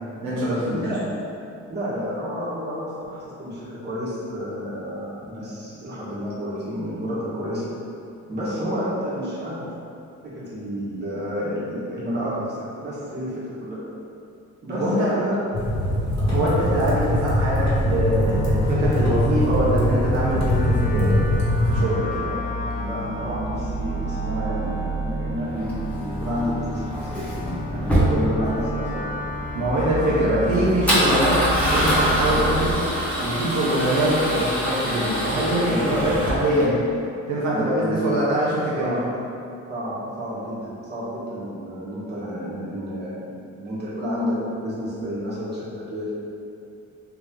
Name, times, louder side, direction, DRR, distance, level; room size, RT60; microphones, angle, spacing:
voice 1, 0.2-0.7 14.7-15.1 16.2-21.3 21.6-22.3 29.5-31.4 31.7-32.7 33.2-36.8 37.3-39.0, right 1 dB, 70° right, -9 dB, 0.9 m, -23 dB
voice 2, 0.7-1.0 1.7-7.6 8.3-9.7 10.2-13.8 14.6-15.4 16.2-16.4 21.6-21.8 22.3-22.4 22.6-27.3 27.6-29.1 30.1-30.6 31.0-31.1 32.2-32.4 35.6-36.2 37.5-38.1 38.8-39.1 39.7-46.1, equal, 35° right, -9 dB, 1.5 m, -30 dB
sound 1, 15.5-21.8, left 1 dB, 65° left, 1.1 m, -22 dB
sound 2, 16.9-32.7, right 1 dB, 30° left, 0.7 m, -30 dB
Male speech man speaking / Car / Engine starting, 25.6-36.6, equal, 5° left, 1.1 m, -25 dB
3.4 x 2.9 x 3.7 m, 2.6 s
cardioid pair, 90°, 30 cm